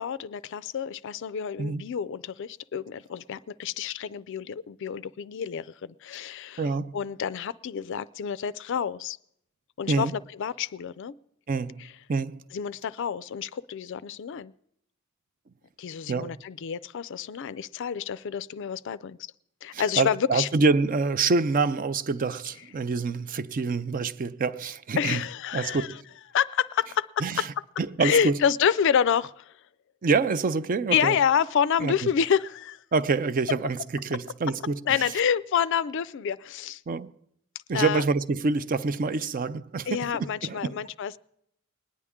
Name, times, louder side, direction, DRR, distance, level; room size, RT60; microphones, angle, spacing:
voice 1, 0.0-6.6 6.9-9.2 9.8-10.1 10.4-11.1 12.5-14.5 15.8-19.2 19.6-20.5 25.0-25.9 26.3-27.4 28.0-29.5 30.9-32.8 34.9-36.8 37.7-38.0 39.9-41.2, left 8 dB, 60° left, 0.4 m, -28 dB
voice 2, 6.6-7.0 9.9-10.1 11.5-12.4 16.1-16.4 19.7-25.2 25.5-26.0 27.2-28.4 30.0-31.2 31.8-32.1 32.9-35.1 36.9-37.1 37.7-40.8, right 4 dB, 40° right, 0.4 m, -26 dB
21.0 x 9.7 x 3.6 m
head